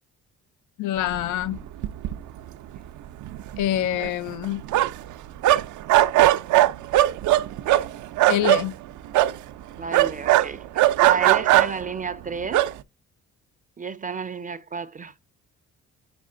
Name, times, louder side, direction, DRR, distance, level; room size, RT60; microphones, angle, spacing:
voice 1, 0.8-1.6 3.6-4.6 8.3-8.7, left 12 dB, 80° left, 0.5 m, -25 dB
sound 1, 1.5-1.6 1.8-2.5 2.8-2.9 3.2-5.1 5.4-8.6 9.1-9.4 9.9-11.9 12.4-12.7, right 15 dB, 75° right, 0.5 m, -19 dB
voice 2, 9.8-12.7 13.8-15.1, right 5 dB, 25° right, 0.4 m, -31 dB
5.3 x 4.9 x 3.7 m
cardioid pair, 90°, 30 cm